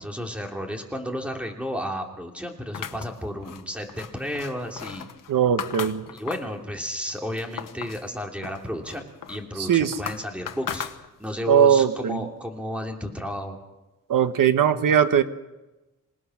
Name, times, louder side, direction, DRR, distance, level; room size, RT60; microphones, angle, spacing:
voice 1, 0.0-5.1 6.1-10.9 11.2-13.6, equal, 5° right, 2 dB, 2.9 m, -32 dB
sound 1, 2.7-6.6 7.0-8.1 8.4-11.4, left 8 dB, 80° left, 1.2 m, -37 dB
voice 2, 5.3-6.0 9.7-9.9 11.5-12.2 14.1-15.2, right 8 dB, 90° right, 9 dB, 1.3 m, -19 dB
27.0 x 19.0 x 6.3 m, 1.1 s
wide cardioid pair, 150°, 32 cm